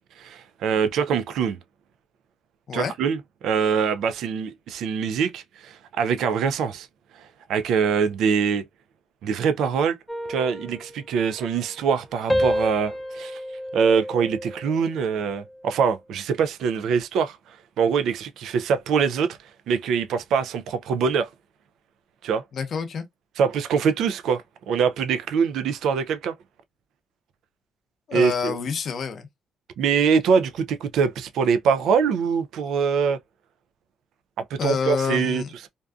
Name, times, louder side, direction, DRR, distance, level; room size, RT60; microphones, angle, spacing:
voice 1, 0.2-1.6 2.7-6.9 7.5-8.6 9.2-10.0 10.3-13.4 13.7-17.4 17.8-19.4 19.7-21.3 22.2-22.4 23.4-26.3 28.1-28.6 29.8-33.2 34.5-35.7, right 6 dB, 80° right, 0.3 m, -23 dB
sound 1, 10.1-12.0 12.3-14.9 15.3-15.7, equal, 5° left, 0.5 m, -30 dB
voice 2, 22.5-23.1 28.1-29.3 34.6-35.5, left 6 dB, 55° left, 0.6 m, -27 dB
2.5 x 2.3 x 2.3 m
cardioid pair, 90°, 0 cm